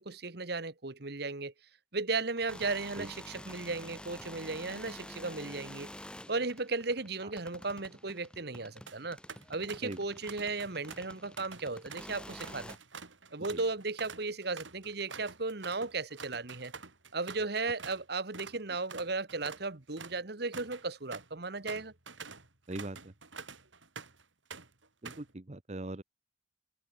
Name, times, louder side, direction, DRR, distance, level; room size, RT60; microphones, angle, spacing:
voice 1, 0.0-1.5 1.9-5.9 6.3-9.2 9.5-12.7 13.3-16.7 17.1-21.9, right 3 dB, 55° right, 1.4 m, -35 dB
sound 1, 2.4-12.8, left 1 dB, 5° left, 4.8 m, -49 dB
sound 2, 8.9-9.0 9.3-10.0 10.3-18.0 18.3-18.6 18.9-24.2 24.5-25.3, right 5 dB, 85° right, 7.0 m, -48 dB
voice 2, 25.0-26.0, right 2 dB, 35° right, 1.0 m, -40 dB
head